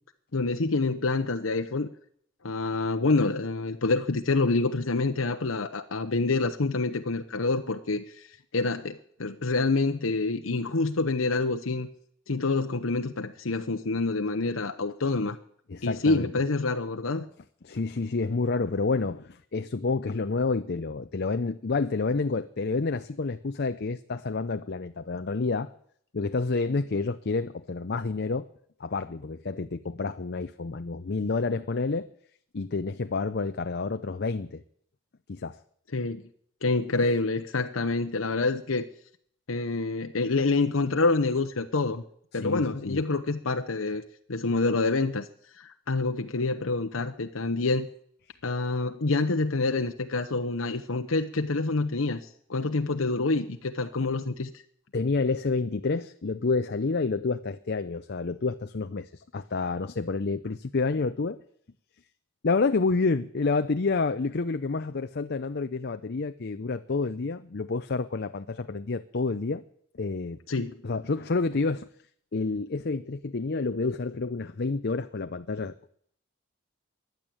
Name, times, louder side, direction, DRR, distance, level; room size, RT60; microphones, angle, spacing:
voice 1, 0.3-1.9 2.4-8.3 8.5-11.9 12.3-15.4 15.8-17.3 35.9-36.2 36.6-38.9 39.5-42.0 42.3-44.0 44.3-45.3 45.6-47.9 48.4-52.2 52.5-54.5 70.5-70.8, left 3 dB, 90° left, 6 dB, 1.0 m, -27 dB
voice 2, 15.7-16.3 17.6-25.7 26.1-28.5 28.8-32.1 32.5-34.6 35.3-35.6 42.3-43.0 54.9-61.4 62.4-69.6 70.0-70.4 70.8-71.9 72.3-75.9, left 3 dB, 55° left, 9 dB, 0.6 m, -29 dB
15.5 x 11.0 x 8.7 m, 0.64 s
head